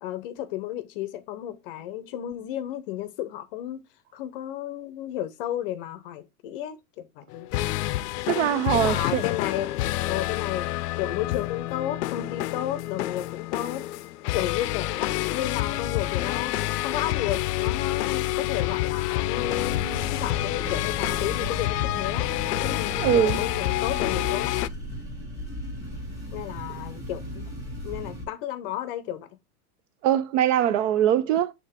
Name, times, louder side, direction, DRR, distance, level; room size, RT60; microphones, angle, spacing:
voice 1, 0.0-3.8 4.1-7.5 8.8-9.7 10.1-10.7 11.0-13.8 14.3-22.3 22.6-24.6 26.3-27.5 27.8-29.3, left 12 dB, 40° left, 0.6 m, -33 dB
sound 1, 7.3-24.7, left 16 dB, 80° left, 0.6 m, -28 dB
voice 2, 8.3-9.2 23.0-23.4 30.0-31.5, right 10 dB, 55° right, 0.8 m, -22 dB
sound 2, 19.4-28.2, equal, 5° right, 1.6 m, -36 dB
7.8 x 3.6 x 3.6 m
supercardioid pair, 155°, 46 cm